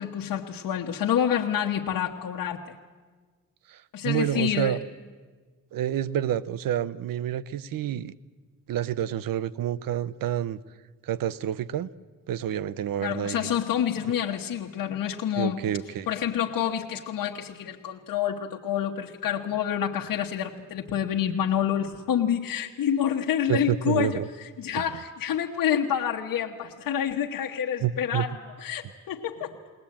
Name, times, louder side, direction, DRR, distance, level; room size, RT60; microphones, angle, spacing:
voice 1, 0.0-2.6 3.9-4.8 13.0-15.6 16.1-29.6, left 9 dB, 85° left, 0 dB, 1.2 m, -28 dB
voice 2, 3.7-4.8 5.7-8.1 8.7-10.6 11.0-11.9 12.3-13.5 15.4-16.1 23.5-24.3 27.8-28.3, right 10 dB, 85° right, 18 dB, 0.7 m, -28 dB
21.0 x 19.0 x 8.7 m, 1.5 s
cardioid pair, 120°, 33 cm